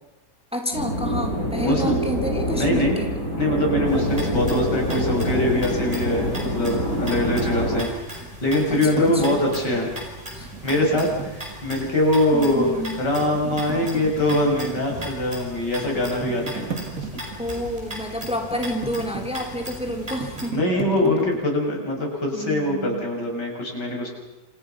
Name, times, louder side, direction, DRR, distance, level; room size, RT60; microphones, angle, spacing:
voice 1, 0.5-3.1 8.7-9.5 10.3-10.5 12.3-12.9 17.4-20.6 22.3-23.1, equal, 5° right, 4 dB, 3.0 m, -29 dB
sound 1, 0.7-7.8, equal, 50° left, 8.7 m, -25 dB
voice 2, 1.6-1.9 2.5-3.0 3.4-9.9 10.6-12.7 13.0-16.7 20.5-24.1, left 1 dB, 75° left, 0 dB, 7.5 m, -23 dB
sound 2, 3.9-20.5, equal, 20° right, 6.9 m, -37 dB
sound 3, 7.9-11.9 12.4-12.5 13.0-21.4, right 5 dB, 50° right, 3.1 m, -36 dB
29.0 x 28.0 x 5.8 m, 0.98 s
omnidirectional pair, 1.8 m